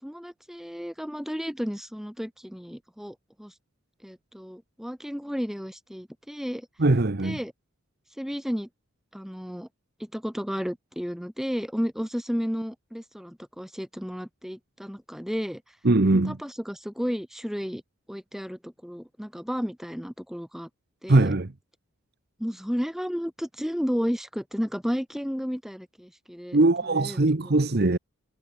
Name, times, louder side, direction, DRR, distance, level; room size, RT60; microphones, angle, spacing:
voice 1, 0.0-3.5 4.0-6.7 7.2-7.5 8.2-8.7 9.1-9.7 10.0-15.6 16.1-17.8 18.1-20.7 21.0-21.3 22.4-26.6 26.9-27.3, equal, ahead, 3.1 m, -33 dB
voice 2, 6.8-7.4 15.8-16.4 21.1-21.5 26.5-28.0, right 2 dB, 50° right, 0.9 m, -21 dB
head